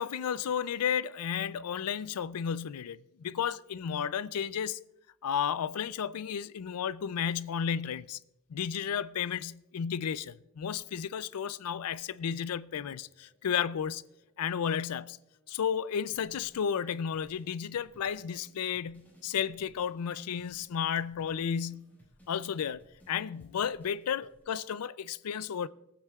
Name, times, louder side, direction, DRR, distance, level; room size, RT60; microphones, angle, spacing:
voice 1, 0.0-4.8 5.2-8.2 8.5-14.0 14.4-15.2 15.5-21.9 22.3-22.8 23.1-25.7, left 8 dB, 85° left, 0.4 m, -33 dB
sound 1, 11.8-14.3 14.8-24.4, equal, 10° left, 4.2 m, -62 dB
21.0 x 9.1 x 2.3 m
head